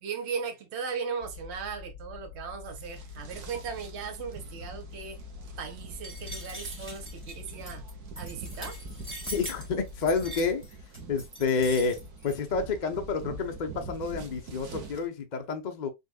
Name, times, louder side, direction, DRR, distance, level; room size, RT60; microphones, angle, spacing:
voice 1, 0.0-5.2 5.6-7.8 8.2-8.8, right 6 dB, 50° right, 1.2 m, -37 dB
sound 1, 1.2-10.6, left 4 dB, 70° left, 1.3 m, -45 dB
sound 2, 2.7-15.1, right 3 dB, 75° right, 1.5 m, -45 dB
sound 3, 6.0-12.4, right 1 dB, 10° right, 1.8 m, -42 dB
voice 2, 9.3-10.6 11.1-15.9, left 4 dB, 45° left, 0.6 m, -29 dB
5.5 x 3.3 x 2.2 m
omnidirectional pair, 1.6 m